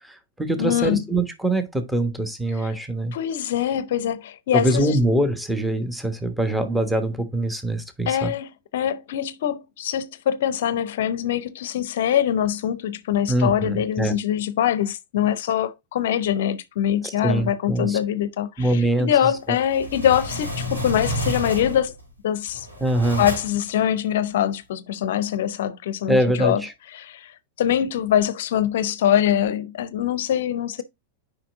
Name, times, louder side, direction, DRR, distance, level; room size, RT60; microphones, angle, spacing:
voice 1, 0.0-3.1 4.5-8.3 13.3-14.1 17.0-18.0 18.6-19.6 22.8-23.2 26.1-26.7, right 1 dB, 5° right, 1.2 m, -23 dB
voice 2, 0.6-1.0 2.5-2.7 3.1-5.0 8.1-21.9 22.2-22.7 23.2-26.6 26.9-30.8, left 10 dB, 55° left, 0.6 m, -23 dB
sound 1, 19.5-22.0 22.5-23.7, equal, 85° right, 3.9 m, -30 dB
5.9 x 5.1 x 3.6 m
figure-of-eight pair, 90°, 0 cm